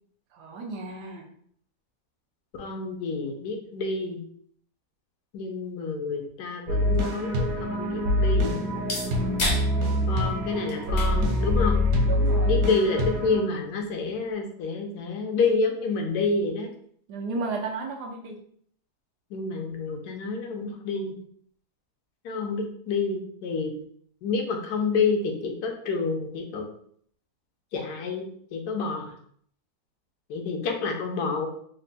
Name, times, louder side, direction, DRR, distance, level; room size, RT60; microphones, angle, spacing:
voice 1, 0.3-1.3 12.1-12.6 17.1-18.4, right 3 dB, 85° right, 2 dB, 1.3 m, -33 dB
voice 2, 2.6-4.2 5.3-8.6 10.1-11.8 12.5-16.7 19.3-21.2 22.2-23.7 24.2-26.7 27.7-29.1 30.3-31.5, left 4 dB, 80° left, 3 dB, 1.2 m, -28 dB
sound 1, 6.4-14.4, left 1 dB, 45° left, 0.9 m, -38 dB
sound 2, 6.7-13.4, left 1 dB, 65° right, 1.1 m, -24 dB
3.5 x 2.2 x 3.9 m, 0.62 s
omnidirectional pair, 1.7 m